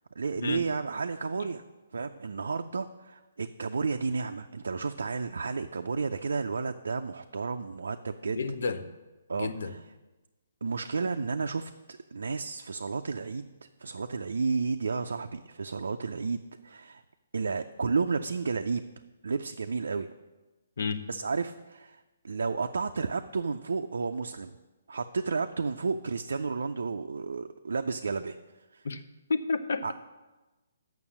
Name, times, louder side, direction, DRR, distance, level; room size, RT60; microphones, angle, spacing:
voice 1, 0.2-1.6 1.9-8.4 9.3-9.8 10.6-13.5 13.8-17.0 17.3-18.8 19.2-20.1 21.1-24.6 24.9-28.4 28.7-28.8 29.8-29.9, right 4 dB, 75° right, 6 dB, 0.4 m, -32 dB
voice 2, 8.3-8.9 9.4-9.8 20.8-21.0 28.8-29.0 29.3-29.9, left 4 dB, 65° left, 11 dB, 0.7 m, -31 dB
7.0 x 5.9 x 7.2 m, 1.1 s
figure-of-eight pair, 135°, 0 cm